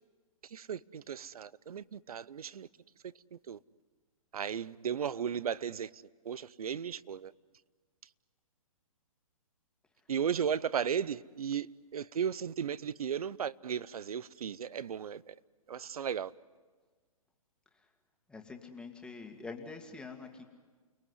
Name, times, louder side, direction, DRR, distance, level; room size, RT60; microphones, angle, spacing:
voice 1, 0.4-2.7 3.0-3.6 4.3-7.3 10.1-15.3 15.7-16.3, right 8 dB, 80° right, 0.7 m, -35 dB
voice 2, 18.3-20.4, left 4 dB, 5° left, 2.0 m, -45 dB
30.0 x 19.5 x 9.7 m
hypercardioid pair, 145°, 19 cm